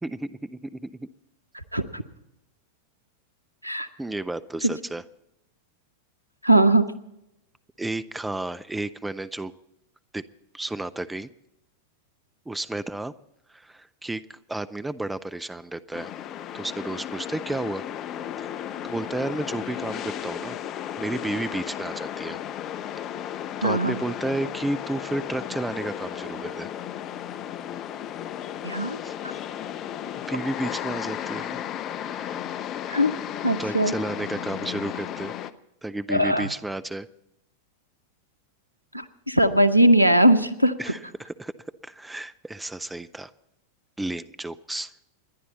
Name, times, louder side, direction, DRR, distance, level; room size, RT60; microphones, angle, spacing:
voice 1, 0.0-1.1 4.0-5.0 7.8-9.5 10.1-10.2 10.5-11.3 12.5-13.1 13.5-16.1 16.5-17.9 18.4-20.6 21.0-22.4 23.6-26.7 29.0-29.2 30.3-31.6 32.0-32.4 33.6-35.3 35.8-37.1 40.8-41.5 41.8-43.3 44.0-44.9, right 2 dB, 5° right, 13 dB, 0.6 m, -32 dB
voice 2, 1.5-2.0 3.6-3.9 6.4-6.9 23.6-24.0 28.6-29.0 32.9-33.1 33.4-33.9 36.1-36.5 38.9-40.7, right 1 dB, 90° right, 14 dB, 0.8 m, -20 dB
sound 1, 15.9-35.5, left 10 dB, 35° left, 0.7 m, -34 dB
28.0 x 11.0 x 4.1 m, 0.83 s
figure-of-eight pair, 90°, 0 cm